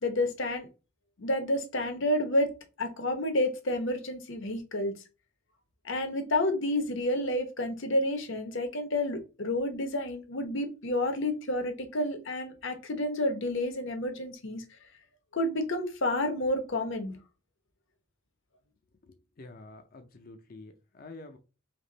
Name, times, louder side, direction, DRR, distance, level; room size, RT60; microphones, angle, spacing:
voice 1, 0.0-0.7 1.2-2.5 2.8-5.0 5.8-14.6 15.3-17.2, left 1 dB, 65° left, 0.9 m, -30 dB
voice 2, 19.0-21.4, left 2 dB, 45° left, 0.5 m, -48 dB
3.5 x 2.9 x 4.0 m
head